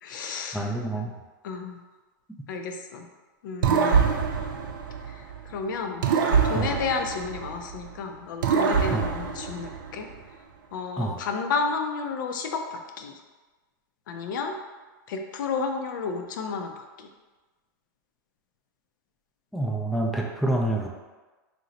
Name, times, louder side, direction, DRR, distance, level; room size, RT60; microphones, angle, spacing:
voice 1, 0.0-1.1 1.4-1.8 2.5-3.1 3.4-4.1 5.1-10.1 10.7-13.2 14.1-14.6 15.1-17.1, left 4 dB, 80° left, 4 dB, 0.4 m, -32 dB
voice 2, 0.5-1.1 6.5-6.7 8.9-9.1 11.0-11.2 19.5-20.9, right 1 dB, ahead, -1 dB, 0.3 m, -27 dB
sound 1, 3.6-5.5 6.0-7.9 8.4-10.1, right 6 dB, 85° right, 0.4 m, -25 dB
2.9 x 2.0 x 3.8 m, 1.2 s
supercardioid pair, 130°, 11 cm